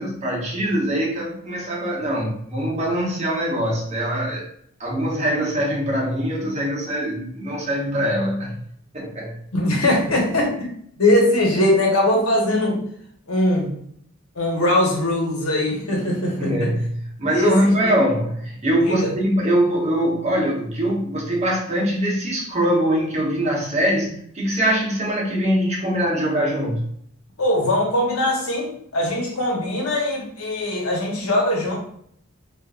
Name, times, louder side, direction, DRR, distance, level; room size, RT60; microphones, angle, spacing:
voice 1, 0.0-4.4 4.8-8.6 8.9-9.3 16.4-16.8 17.2-26.8, equal, 30° right, -3 dB, 0.8 m, -22 dB
voice 2, 9.5-10.7 11.0-12.8 13.3-13.7 14.4-16.7 17.3-17.9 18.8-19.1 27.4-31.8, left 1 dB, 80° left, -1 dB, 1.1 m, -21 dB
3.7 x 2.5 x 2.4 m, 0.66 s
head